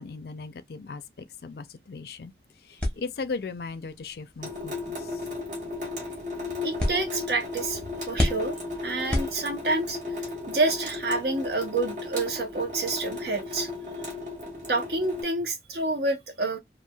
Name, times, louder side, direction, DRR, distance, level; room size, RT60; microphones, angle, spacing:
voice 1, 0.0-2.3 2.7-5.2, left 4 dB, 60° left, 0.4 m, -37 dB
sound 1, 2.8-9.9, left 1 dB, 5° left, 0.8 m, -34 dB
Water tap faucet / Sink (filling or washing) / Drip, 4.4-15.2, left 3 dB, 45° right, 1.2 m, -35 dB
voice 2, 6.6-7.8 8.1-10.0 10.5-13.7 14.7-16.6, right 3 dB, 65° right, 0.8 m, -28 dB
3.0 x 2.4 x 2.3 m
head